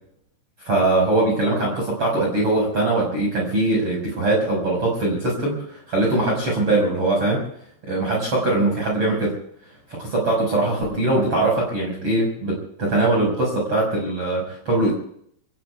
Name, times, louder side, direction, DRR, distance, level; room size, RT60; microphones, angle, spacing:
voice 1, 0.6-7.5 7.9-9.3 9.9-14.9, right 2 dB, 30° right, -2 dB, 5.7 m, -21 dB
27.5 x 21.0 x 2.4 m, 0.66 s
omnidirectional pair, 5.8 m